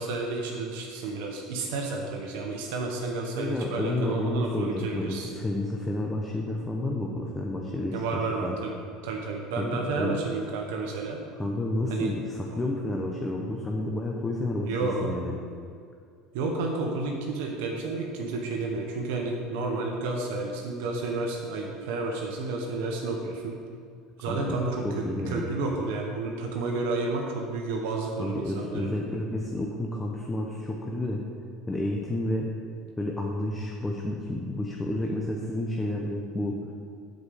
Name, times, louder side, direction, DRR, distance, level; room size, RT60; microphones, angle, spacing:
voice 1, 0.0-5.3 7.9-8.7 9.0-11.2 11.9-12.1 12.5-12.6 14.7-15.2 16.3-23.6 24.2-28.9, right 3 dB, 80° right, 0 dB, 1.2 m, -31 dB
voice 2, 3.4-8.6 9.6-10.2 11.4-12.2 12.6-15.4 24.3-24.6 24.8-25.5 28.2-31.2 31.7-32.5 33.0-36.6, left 1 dB, 10° left, -1 dB, 0.9 m, -30 dB
8.1 x 5.3 x 7.0 m, 2.2 s
supercardioid pair, 120°, 0 cm